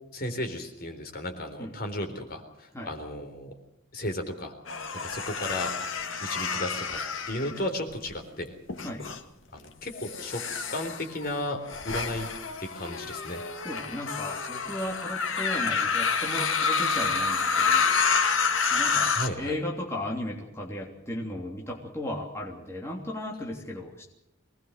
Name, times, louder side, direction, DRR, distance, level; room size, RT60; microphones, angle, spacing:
voice 1, 0.1-3.5 3.9-4.5 5.0-5.7 6.2-7.0 7.3-8.5 9.5-10.4 10.7-11.6 11.8-12.3 12.6-13.4 19.1-19.6, left 1 dB, 45° left, 5 dB, 3.9 m, -34 dB
sound 1, 4.7-8.1 8.7-9.2 9.9-19.3, left 5 dB, 70° left, 2.1 m, -28 dB
voice 2, 13.6-18.0 18.7-24.1, left 1 dB, 15° left, -1 dB, 3.2 m, -35 dB
24.0 x 19.5 x 6.6 m, 0.84 s
head